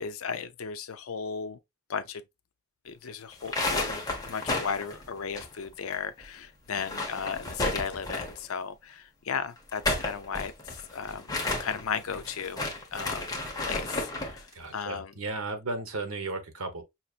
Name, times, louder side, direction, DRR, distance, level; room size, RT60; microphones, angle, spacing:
voice 1, 0.0-1.6 1.9-2.2 2.8-12.6 12.9-15.1 15.7-15.8, left 6 dB, 75° left, 0.5 m, -36 dB
sound 1, 3.3-6.0 6.2-6.3 6.7-8.5 9.6-14.4, left 2 dB, 15° left, 1.1 m, -32 dB
voice 2, 14.5-16.8, right 3 dB, 80° right, 1.1 m, -35 dB
5.8 x 2.9 x 2.4 m
head